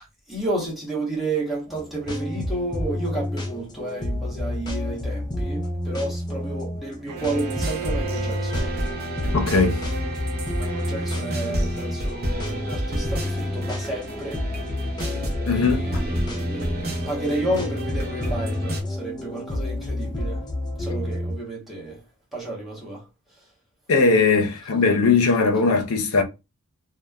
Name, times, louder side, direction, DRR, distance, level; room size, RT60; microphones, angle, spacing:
voice 1, 0.3-8.7 10.6-14.4 15.5-20.4 20.8-22.0 22.3-23.0, right 1 dB, ahead, 1.0 m, -31 dB
sound 1, 1.7-21.3, left 1 dB, 20° left, 0.4 m, -30 dB
Bowed string instrument, 7.1-11.8, right 6 dB, 75° right, 0.3 m, -36 dB
sound 2, 7.2-18.8, equal, 45° right, 0.6 m, -31 dB
voice 2, 9.3-9.8 15.5-15.8 23.9-26.2, left 4 dB, 75° left, 0.6 m, -19 dB
3.1 x 2.1 x 2.3 m
head